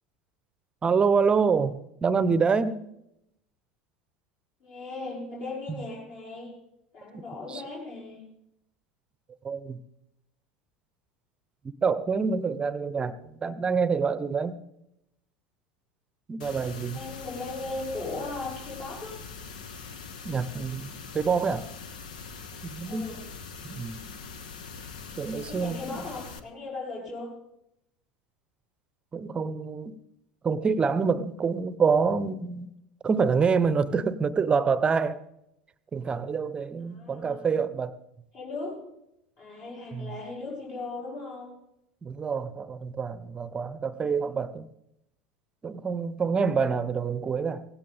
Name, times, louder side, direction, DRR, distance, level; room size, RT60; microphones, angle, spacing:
voice 1, 0.8-1.8 2.0-2.8 5.7-5.8 7.5-7.6 9.4-9.8 11.8-14.6 16.3-17.0 20.2-21.7 22.6-23.1 23.6-24.0 25.2-26.1 29.1-30.0 30.4-32.7 33.0-35.2 35.9-38.0 39.9-40.1 42.0-44.7 45.6-47.7, right 5 dB, 20° right, 16 dB, 0.9 m, -26 dB
voice 2, 4.6-6.5 6.9-8.3 16.9-19.2 22.9-23.2 25.3-27.3 36.9-37.5 38.3-38.8 39.4-41.5 43.9-44.3, left 3 dB, 45° left, -6 dB, 5.9 m, -38 dB
sound 1, 16.4-26.4, left 5 dB, 70° left, 1.1 m, -42 dB
17.5 x 16.5 x 3.6 m, 0.82 s
figure-of-eight pair, 75°, 4 cm